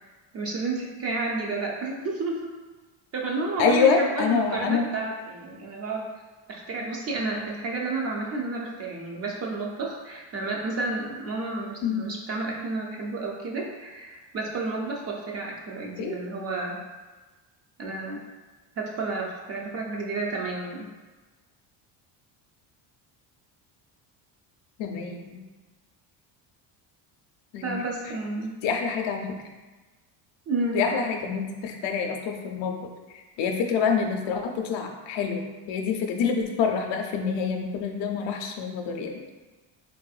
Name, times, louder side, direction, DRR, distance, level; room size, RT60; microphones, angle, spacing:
voice 1, 0.3-2.5 3.1-6.1 6.5-16.8 17.8-18.2 18.8-20.9 27.6-28.5 30.5-30.8, right 3 dB, 35° right, -1 dB, 0.4 m, -31 dB
voice 2, 3.6-4.9 11.8-12.0 16.0-16.2 24.8-25.4 27.5-27.8 28.6-29.4 30.7-32.8 33.4-39.2, left 6 dB, 70° left, 3 dB, 0.6 m, -26 dB
3.4 x 2.5 x 2.4 m, 1.2 s
cardioid pair, 135°, 45 cm